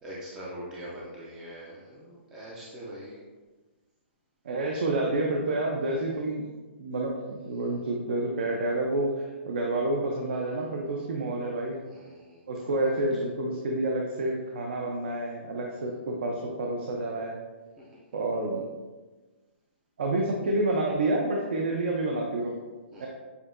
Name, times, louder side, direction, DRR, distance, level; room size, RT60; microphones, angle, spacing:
voice 1, 0.0-3.2 5.9-6.1 11.9-13.0 17.8-17.9 22.9-23.1, equal, 5° right, -7 dB, 0.4 m, -43 dB
voice 2, 4.4-6.5 6.8-11.8 12.5-17.4 18.1-18.6 20.0-22.5 23.0-23.1, right 2 dB, 55° right, 0 dB, 0.6 m, -29 dB
6.8 x 2.7 x 2.5 m, 1.3 s
hypercardioid pair, 170°, 7 cm